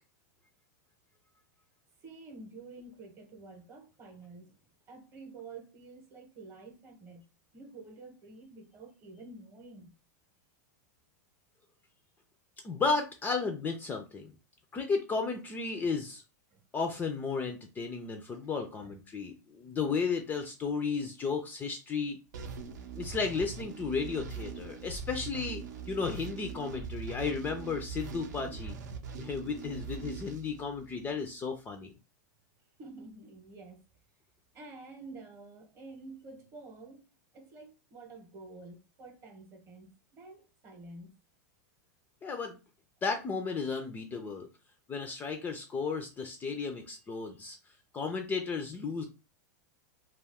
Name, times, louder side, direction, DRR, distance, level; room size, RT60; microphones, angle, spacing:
voice 1, 2.0-4.6 4.9-7.2 7.5-9.9 16.5-16.6 18.0-18.5 18.8-19.0 32.8-33.8 34.5-37.1 37.3-41.1, right 3 dB, 30° right, 0.8 m, -49 dB
voice 2, 12.6-14.3 14.7-16.2 16.7-22.2 23.0-28.8 29.2-31.9 42.2-42.6 43.0-44.5 44.9-47.6 47.9-49.0, left 4 dB, 20° left, 0.3 m, -34 dB
sound 1, 22.3-31.2, right 5 dB, 75° right, 0.5 m, -42 dB
2.3 x 2.3 x 3.4 m
hypercardioid pair, 130°, 10 cm